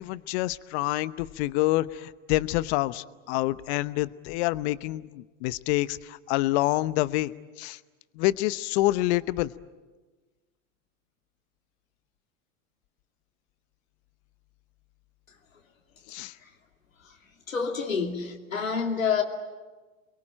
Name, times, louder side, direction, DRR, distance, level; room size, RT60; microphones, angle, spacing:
voice 1, 0.0-7.3 7.6-7.8 8.2-9.5 16.1-16.3, left 18 dB, 55° left, 1.0 m, -27 dB
voice 2, 17.5-19.2, left 6 dB, 90° left, 3.0 m, -28 dB
29.0 x 22.5 x 8.9 m
hypercardioid pair, 90°, 39 cm